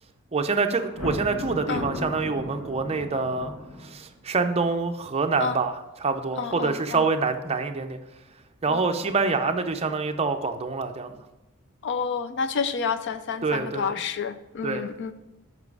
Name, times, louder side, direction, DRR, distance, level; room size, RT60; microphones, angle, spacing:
voice 1, 0.3-3.5 3.8-5.7 6.0-8.0 8.6-11.2 13.4-13.9 14.6-14.8, right 4 dB, 30° right, 6 dB, 0.5 m, -26 dB
Thunder, 0.8-4.2, left 1 dB, 85° left, 1.6 m, -35 dB
voice 2, 6.4-7.1 8.7-8.8 11.8-15.1, left 5 dB, 55° left, 12 dB, 0.4 m, -29 dB
7.2 x 5.7 x 4.8 m, 1.0 s
head